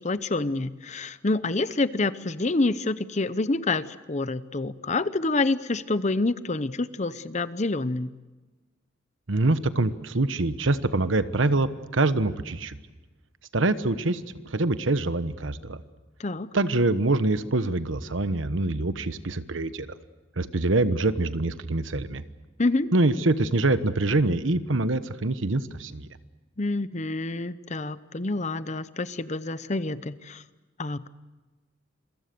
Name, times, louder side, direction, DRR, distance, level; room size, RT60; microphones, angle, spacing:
voice 1, 0.0-8.1 16.2-16.5 22.6-22.9 26.6-30.4 30.8-31.1, left 2 dB, 35° left, 14 dB, 0.8 m, -27 dB
voice 2, 9.3-12.8 13.5-14.2 14.5-15.8 16.5-19.9 20.4-22.2 22.9-26.1, right 2 dB, 75° right, 12 dB, 1.2 m, -25 dB
28.0 x 23.5 x 6.9 m, 1.2 s
head